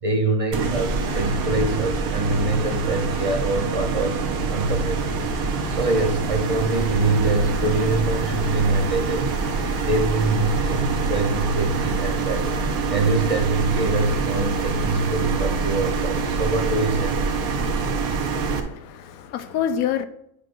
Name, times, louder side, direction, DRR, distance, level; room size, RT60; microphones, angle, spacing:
voice 1, 0.0-4.2 4.5-9.4 9.8-12.5 12.9-17.3, right 2 dB, 35° right, 0.6 m, -24 dB
sound 1, 0.5-18.6, right 4 dB, 75° right, 1.4 m, -25 dB
voice 2, 18.4-20.1, left 9 dB, 75° left, 1.0 m, -27 dB
10.0 x 6.2 x 2.6 m
omnidirectional pair, 1.6 m